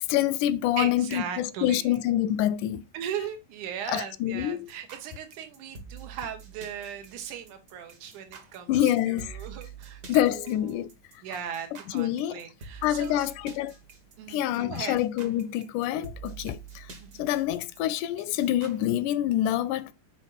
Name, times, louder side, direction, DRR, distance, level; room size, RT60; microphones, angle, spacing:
voice 1, 0.1-2.8 3.9-4.7 8.7-9.4 10.1-10.9 11.9-12.4 12.8-13.7 14.3-16.9 17.2-19.9, left 12 dB, 85° left, 2.0 m, -26 dB
voice 2, 0.8-2.0 2.9-10.9 11.2-13.3 14.2-15.0 17.0-17.2, right 8 dB, 85° right, 2.6 m, -38 dB
sound 1, 4.7-18.9, right 6 dB, 45° right, 1.5 m, -46 dB
7.0 x 5.5 x 3.9 m
omnidirectional pair, 3.5 m